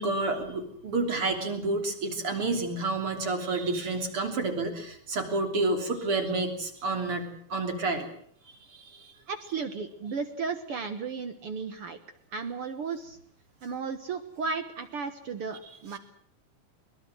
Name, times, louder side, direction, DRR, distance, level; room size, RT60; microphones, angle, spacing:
voice 1, 0.0-8.1 8.7-9.1, right 3 dB, 35° right, 6 dB, 3.8 m, -29 dB
voice 2, 9.3-12.0 12.3-13.2 13.6-16.0, right 5 dB, 70° right, 10 dB, 1.3 m, -34 dB
22.5 x 21.0 x 7.7 m, 0.62 s
omnidirectional pair, 4.4 m